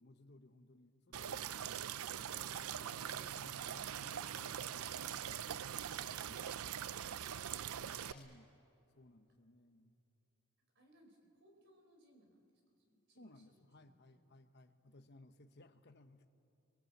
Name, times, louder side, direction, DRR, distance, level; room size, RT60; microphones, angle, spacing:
voice 1, 0.0-1.8 2.1-5.4 6.3-6.4 8.1-8.5 8.9-9.9 13.1-16.3, left 1 dB, 50° left, 8 dB, 1.2 m, -62 dB
sound 1, 1.1-8.1, right 9 dB, 85° right, 0.5 m, -42 dB
sound 2, 7.8-9.2, left 2 dB, 5° left, 6.4 m, -68 dB
voice 2, 10.7-14.3, right 1 dB, 55° right, 3 dB, 4.6 m, -68 dB
25.0 x 25.0 x 8.2 m, 2.9 s
head